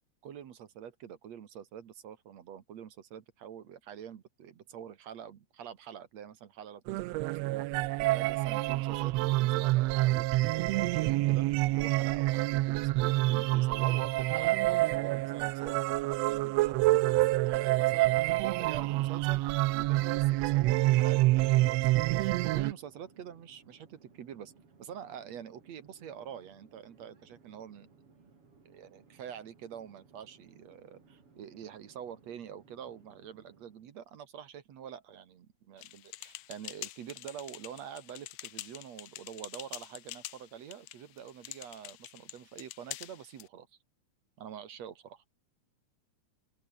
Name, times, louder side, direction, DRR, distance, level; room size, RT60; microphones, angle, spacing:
voice 1, 0.2-19.4 19.7-24.5 24.8-27.9 28.7-43.7 44.4-45.2, right 9 dB, 65° right, 2.7 m, -46 dB
sound 1, 6.9-22.7, right 18 dB, 90° right, 1.5 m, -27 dB
Conversation / Chatter / Fixed-wing aircraft airplane, 17.2-33.9, right 4 dB, 45° right, 4.9 m, -61 dB
sound 2, 35.8-43.5, left 16 dB, 75° left, 1.5 m, -46 dB
open air
omnidirectional pair, 3.6 m